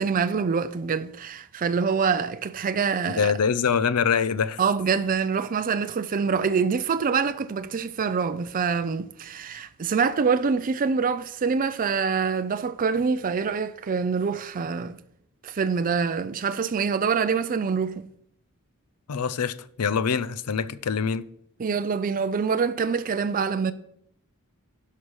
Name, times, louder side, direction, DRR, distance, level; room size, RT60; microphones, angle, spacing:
voice 1, 0.0-3.3 4.6-15.0 15.4-18.1 21.6-23.7, right 5 dB, 40° right, 0.4 m, -25 dB
voice 2, 3.1-4.6 19.1-21.2, left 6 dB, 85° left, 0.5 m, -24 dB
11.0 x 5.7 x 4.8 m
head